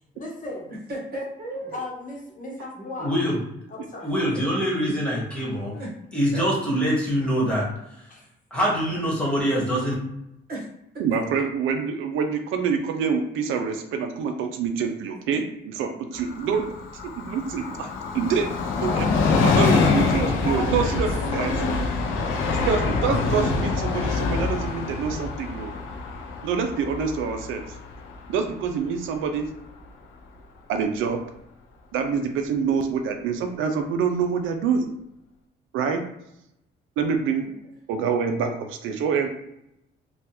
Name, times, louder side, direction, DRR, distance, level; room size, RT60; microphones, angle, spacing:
voice 1, 0.0-0.7 1.7-3.2 3.7-4.1 8.1-8.3, left 2 dB, 40° left, -2 dB, 0.9 m, -36 dB
voice 2, 0.9-1.8 4.3-4.4 5.7-5.9 6.3-6.4 10.5-10.7 10.9-11.0 11.3-11.4 17.7-17.8 20.2-21.0 21.7-21.8 22.2-22.7 37.4-37.5, right 1 dB, 50° right, -2 dB, 1.2 m, -35 dB
voice 3, 3.0-3.4 4.0-5.7 6.1-7.7 8.5-9.9, equal, 5° left, -5 dB, 1.4 m, -24 dB
voice 4, 11.0-16.7 17.2-18.5 18.8-19.1 19.4-21.6 22.6-25.7 26.4-27.6 28.3-29.5 30.7-31.2 31.9-34.9 35.7-36.1 37.0-37.5 37.9-39.3, right 6 dB, 85° right, 5 dB, 0.4 m, -26 dB
Train, 16.1-29.5 29.8-29.9, left 4 dB, 85° left, 0.5 m, -25 dB
3.3 x 2.3 x 2.9 m, 0.80 s
cardioid pair, 90°, 20 cm